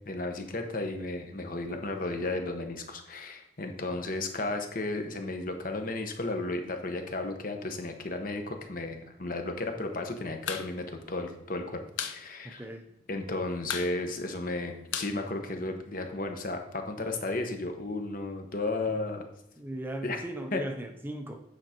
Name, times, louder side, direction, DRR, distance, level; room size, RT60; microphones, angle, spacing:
voice 1, 0.0-12.6 13.1-19.3 20.0-20.2 20.5-20.6, left 2 dB, 45° left, 5 dB, 1.1 m, -34 dB
sound 1, 10.4-10.7 10.9-11.0 11.3-12.2 12.5-12.6 12.9-13.3 13.6-16.0, left 7 dB, 75° left, 0.8 m, -36 dB
voice 2, 19.6-21.4, right 1 dB, 10° right, 5 dB, 0.6 m, -37 dB
8.9 x 5.0 x 4.4 m, 0.87 s
head